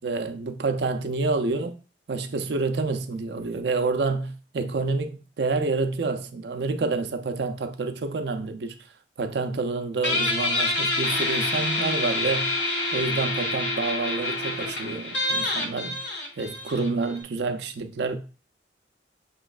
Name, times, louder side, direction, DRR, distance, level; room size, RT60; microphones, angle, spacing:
voice 1, 0.0-1.8 2.1-8.8 9.2-12.5 12.9-16.0 16.4-18.2, right 3 dB, 65° right, 0.5 m, -28 dB
Guitar, 10.0-17.2, left 2 dB, 80° left, 1.1 m, -27 dB
6.1 x 3.0 x 2.4 m
head